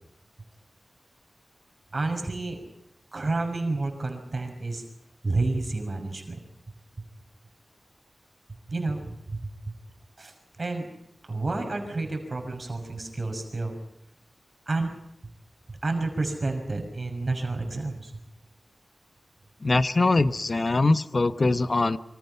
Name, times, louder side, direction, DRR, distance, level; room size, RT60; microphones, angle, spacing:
voice 1, 1.9-2.6 3.1-4.8 5.2-6.4 8.7-9.5 10.2-10.9 11.3-13.8 14.7-14.9 15.7-18.1, right 3 dB, 40° right, 4 dB, 5.9 m, -30 dB
voice 2, 19.6-22.0, left 2 dB, 40° left, 12 dB, 1.1 m, -22 dB
28.0 x 25.0 x 5.8 m, 0.80 s
wide cardioid pair, 105°, 0 cm